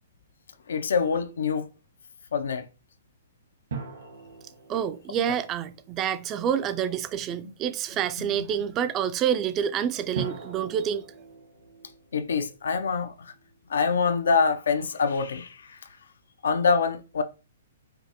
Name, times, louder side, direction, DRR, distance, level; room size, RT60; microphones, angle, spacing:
voice 1, 0.7-1.7 2.3-2.7 8.2-8.3 12.1-13.3 13.7-15.8 16.4-17.2, left 5 dB, 80° left, 0.5 m, -25 dB
sound 1, 3.7-6.5 10.2-13.5, right 5 dB, 80° right, 1.3 m, -41 dB
voice 2, 4.7-11.0, right 9 dB, 25° right, 0.3 m, -28 dB
5.0 x 2.1 x 2.9 m
hypercardioid pair, 150°, 0 cm